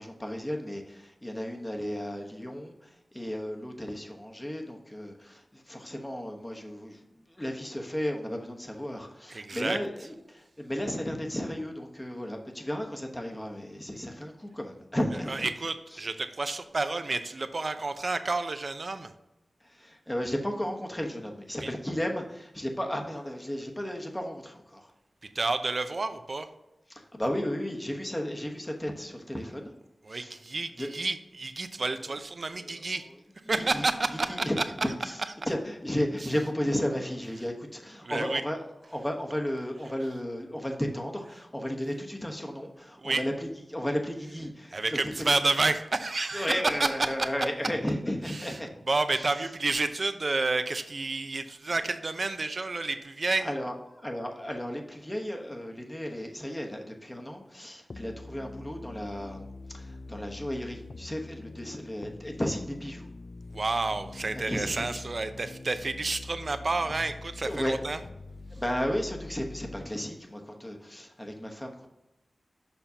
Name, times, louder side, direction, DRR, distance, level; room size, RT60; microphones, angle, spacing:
voice 1, 0.0-15.5 15.9-16.0 19.6-24.9 26.9-29.7 30.1-30.4 30.8-30.9 32.6-32.9 33.7-33.9 34.3-34.6 35.0-35.2 35.5-38.6 38.9-45.1 46.3-48.7 49.2-49.3 53.4-63.1 63.6-63.7 64.3-65.0 67.4-68.0 68.5-71.9, equal, 15° left, 2 dB, 1.0 m, -34 dB
voice 2, 9.3-9.8 15.3-19.1 21.6-21.7 25.3-26.5 30.0-33.1 33.5-34.5 38.0-38.4 43.0-43.2 44.7-47.3 48.3-48.6 48.9-53.5 63.5-68.0, right 3 dB, 50° right, 9 dB, 0.6 m, -30 dB
sound 1, 57.9-69.9, left 2 dB, 50° left, 0.3 m, -44 dB
7.0 x 5.6 x 2.8 m, 0.94 s
wide cardioid pair, 85°, 0 cm